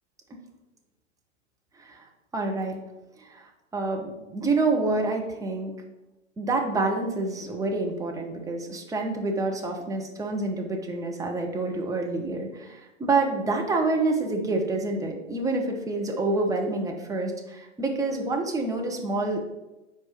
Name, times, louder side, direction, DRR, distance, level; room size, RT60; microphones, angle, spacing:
voice 1, 2.3-2.8 3.2-5.7 6.4-19.4, right 3 dB, 10° right, 2 dB, 0.7 m, -27 dB
4.6 x 4.4 x 5.8 m, 1.0 s
hypercardioid pair, 110°, 37 cm